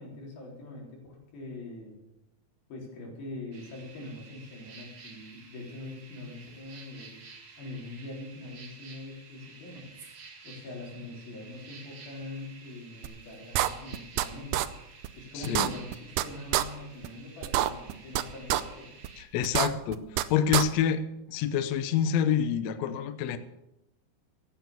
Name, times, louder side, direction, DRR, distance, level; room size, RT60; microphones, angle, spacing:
voice 1, 0.0-2.0 2.7-7.2 7.6-9.9 10.4-14.7 15.2-18.9, left 2 dB, 70° left, -2 dB, 5.7 m, -43 dB
sound 1, 3.5-19.2, right 4 dB, 45° right, 3.0 m, -51 dB
sound 2, 13.0-13.1 13.5-14.3 14.5-14.7 15.0-15.1 15.4-16.2 16.5-16.6 17.0-17.1 17.4-18.2 18.5-18.6 19.0-19.1 19.4-20.2 20.5-20.6, right 14 dB, 80° right, 2.2 m, -26 dB
voice 2, 15.3-15.7 19.2-23.4, left 8 dB, 90° left, 11 dB, 1.5 m, -27 dB
15.0 x 9.4 x 6.9 m, 0.90 s
omnidirectional pair, 4.4 m